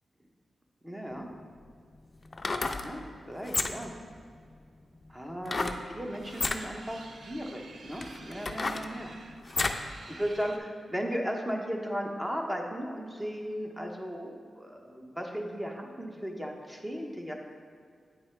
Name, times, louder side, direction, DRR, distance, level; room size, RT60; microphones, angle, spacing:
voice 1, 0.8-1.3 2.8-3.9 5.1-9.1 10.1-17.3, equal, 15° right, 2 dB, 0.8 m, -36 dB
sound 1, 1.1-1.2 2.3-2.9 3.4-4.0 5.5-5.8 6.3-6.6 7.4-7.5 8.0-9.9 10.3-10.4, left 3 dB, 35° left, 0.4 m, -31 dB
sound 2, 5.6-10.6, right 3 dB, 60° right, 0.5 m, -51 dB
9.2 x 4.4 x 3.3 m, 2.2 s
cardioid pair, 90°, 0 cm